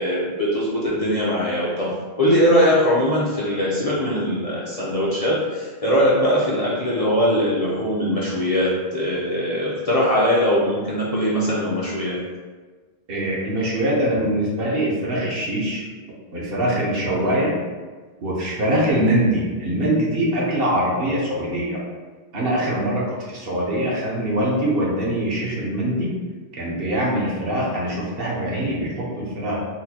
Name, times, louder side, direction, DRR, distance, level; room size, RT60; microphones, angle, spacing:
voice 1, 0.0-12.2, equal, 45° left, -8 dB, 0.5 m, -21 dB
voice 2, 13.1-15.8 16.3-17.5 18.2-21.8 22.3-26.1 26.6-29.6, right 1 dB, 60° right, -4 dB, 1.0 m, -23 dB
4.1 x 2.1 x 2.8 m, 1.4 s
omnidirectional pair, 1.1 m